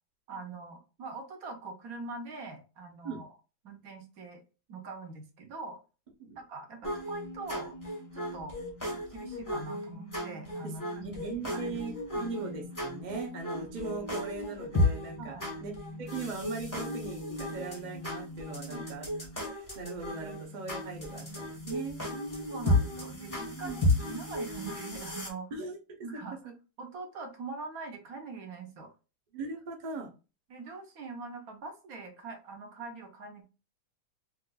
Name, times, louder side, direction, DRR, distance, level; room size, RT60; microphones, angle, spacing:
voice 1, 0.3-3.3 3.6-4.4 4.7-5.8 6.4-7.7 8.1-8.6 9.1-11.3 11.5-11.8 12.1-12.3 15.2-15.5 18.7-18.9 22.5-25.5 26.0-26.3 26.8-28.9 30.5-33.4, right 3 dB, 55° right, 3 dB, 1.1 m, -43 dB
sound 1, 6.8-25.3, left 1 dB, 15° left, 0.7 m, -34 dB
voice 2, 11.0-11.9 12.2-15.7 16.0-19.1 19.5-22.0 23.5-23.8 25.5-25.8 26.4-26.5 29.3-30.1, right 4 dB, 80° right, 1 dB, 0.4 m, -39 dB
4.3 x 2.5 x 2.2 m, 0.31 s
omnidirectional pair, 2.1 m